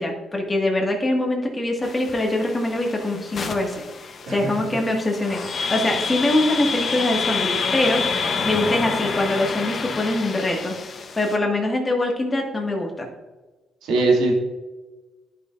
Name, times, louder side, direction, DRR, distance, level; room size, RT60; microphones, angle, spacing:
voice 1, 0.0-8.0 8.4-10.7 11.2-13.1, left 1 dB, 20° left, 0 dB, 1.6 m, -23 dB
sound 1, 1.8-11.4, left 5 dB, 45° left, 0.8 m, -28 dB
voice 2, 13.8-14.3, right 3 dB, 90° right, -1 dB, 2.0 m, -20 dB
11.0 x 5.7 x 2.5 m, 1.2 s
cardioid pair, 90°, 0 cm